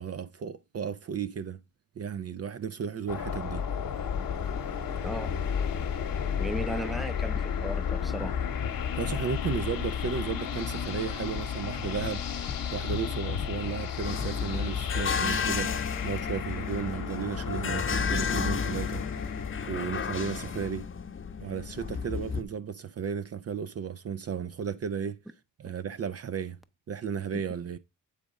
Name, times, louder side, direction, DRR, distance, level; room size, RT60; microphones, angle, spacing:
voice 1, 0.0-1.6 2.0-3.6 8.9-20.9 21.4-25.2 25.6-26.6 26.9-27.8, right 7 dB, 45° right, 0.4 m, -34 dB
sound 1, 3.1-20.7, left 7 dB, 80° left, 1.0 m, -33 dB
voice 2, 5.0-5.3 6.4-8.4 27.3-27.4, right 1 dB, ahead, 0.6 m, -36 dB
sound 2, 14.0-22.4, left 6 dB, 40° left, 0.8 m, -32 dB
8.4 x 3.6 x 5.1 m
cardioid pair, 70°, 34 cm